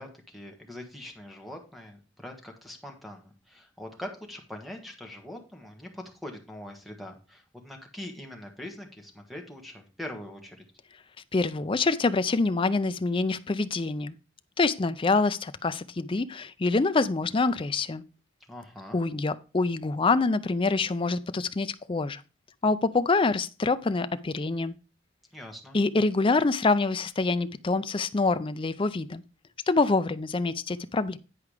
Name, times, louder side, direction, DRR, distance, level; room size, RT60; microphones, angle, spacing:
voice 1, 0.0-10.6 18.5-19.0 25.3-25.8, left 1 dB, ahead, 1.5 m, -42 dB
voice 2, 11.3-14.1 14.6-18.0 18.9-22.2 22.6-24.7 25.7-29.2 29.7-31.2, left 3 dB, 25° left, 0.4 m, -26 dB
10.0 x 4.7 x 4.9 m
head